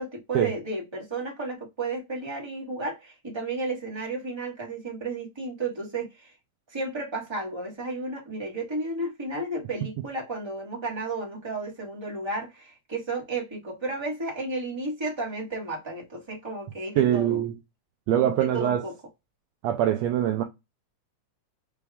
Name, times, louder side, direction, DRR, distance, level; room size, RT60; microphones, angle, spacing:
voice 1, 0.0-6.3 6.7-17.4 18.4-18.9, right 2 dB, 15° right, 0.9 m, -33 dB
voice 2, 17.0-17.5 18.1-18.8 19.6-20.4, right 11 dB, 75° right, 1.7 m, -23 dB
5.9 x 2.4 x 3.4 m
omnidirectional pair, 3.3 m